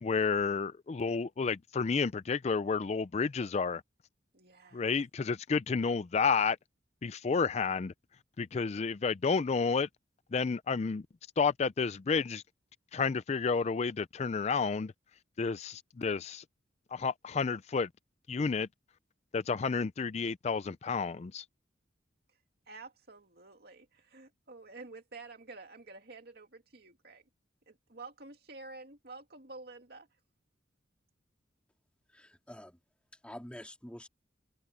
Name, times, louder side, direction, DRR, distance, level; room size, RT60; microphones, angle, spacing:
voice 1, 0.0-3.8 4.7-6.6 7.0-7.9 8.4-9.9 10.3-11.0 11.4-12.4 12.9-14.9 15.4-16.4 16.9-17.9 18.3-18.7 19.3-21.4, left 5 dB, 35° left, 0.4 m, -30 dB
voice 2, 4.3-4.8 22.7-27.2 27.7-30.1, right 3 dB, 55° right, 2.6 m, -50 dB
voice 3, 32.1-32.8 33.2-34.1, equal, 5° left, 2.5 m, -47 dB
head